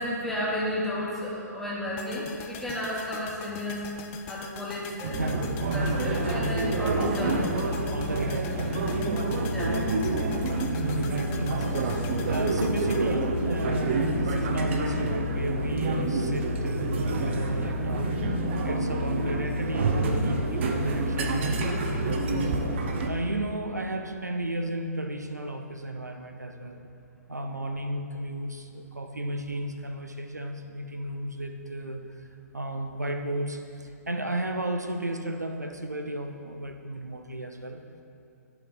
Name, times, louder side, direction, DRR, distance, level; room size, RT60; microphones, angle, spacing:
voice 1, 0.0-3.8 4.3-5.2 5.7-7.7 9.5-9.8, left 1 dB, 5° left, -6 dB, 1.3 m, -32 dB
sound 1, 2.0-14.1 14.4-14.5, left 7 dB, 25° left, 0.4 m, -44 dB
sound 2, 5.0-23.1, right 2 dB, 45° right, 0.7 m, -27 dB
voice 2, 5.2-5.5 7.9-8.7 10.4-22.6 23.0-26.8 27.3-32.3 32.5-37.8, right 1 dB, 85° right, 4 dB, 0.6 m, -34 dB
9.7 x 5.8 x 4.0 m, 2.7 s
figure-of-eight pair, 120°, 9 cm